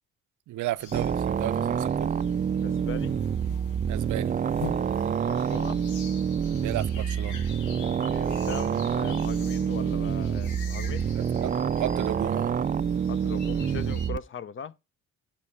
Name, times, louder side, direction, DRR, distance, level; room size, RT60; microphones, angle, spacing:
voice 1, 0.5-2.1 3.9-4.3 6.6-7.4 11.1-12.5, right 15 dB, 75° right, 0.6 m, -34 dB
sound 1, 0.8-14.1, left 5 dB, 80° left, 2.0 m, -45 dB
sound 2, 0.9-14.2, right 7 dB, 30° right, 0.4 m, -27 dB
voice 2, 2.6-3.2 5.1-5.8 8.0-11.1 13.1-14.7, left 6 dB, 40° left, 0.7 m, -39 dB
8.3 x 4.5 x 7.2 m
cardioid pair, 90°, 30 cm